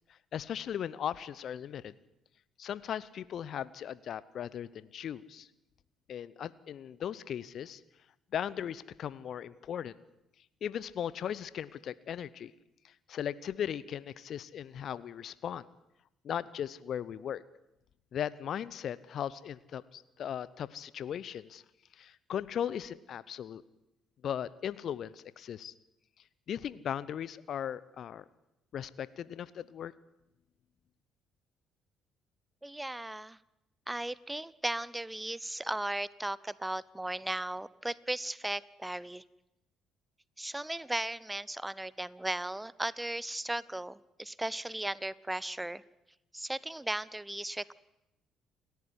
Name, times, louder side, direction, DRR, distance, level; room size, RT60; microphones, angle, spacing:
voice 1, 0.1-1.9 2.6-5.5 6.1-7.8 8.3-10.0 10.6-12.5 12.8-15.7 16.2-17.4 18.1-21.6 21.9-23.6 24.2-25.7 26.5-28.2 28.7-29.9, left 9 dB, 55° left, 19 dB, 0.8 m, -38 dB
voice 2, 32.6-33.4 33.9-39.2 40.4-45.8 46.3-47.7, right 1 dB, 10° right, 21 dB, 0.8 m, -36 dB
28.5 x 13.0 x 9.8 m, 0.89 s
figure-of-eight pair, 50°, 0 cm